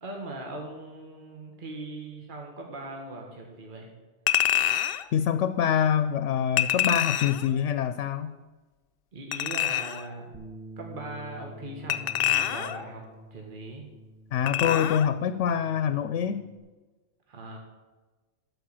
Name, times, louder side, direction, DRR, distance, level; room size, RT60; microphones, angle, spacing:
voice 1, 0.0-3.9 9.1-10.4 10.8-13.0 13.3-13.9 17.3-17.6, right 2 dB, 45° right, 1 dB, 1.6 m, -40 dB
Chink clink, 4.3-5.0 6.6-7.5 9.3-10.1 11.9-12.9 14.5-15.1 15.5-15.6, left 11 dB, 60° left, 0.7 m, -26 dB
voice 2, 5.1-8.3 14.3-16.4, left 8 dB, 90° left, 11 dB, 0.9 m, -25 dB
Bass guitar, 10.3-16.6, right 1 dB, 10° right, 1.3 m, -48 dB
12.5 x 5.0 x 8.8 m, 1.3 s
omnidirectional pair, 1.2 m